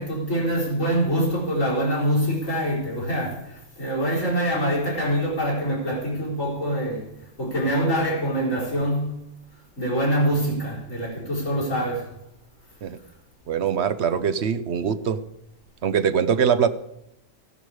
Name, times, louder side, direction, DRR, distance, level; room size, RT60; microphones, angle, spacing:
voice 1, 0.0-9.2 9.8-12.2, equal, 85° left, 4.6 m, -25 dB
voice 2, 13.5-15.2 15.8-16.7, right 7 dB, 60° right, 1.0 m, -22 dB
15.5 x 11.0 x 4.8 m
omnidirectional pair, 1.3 m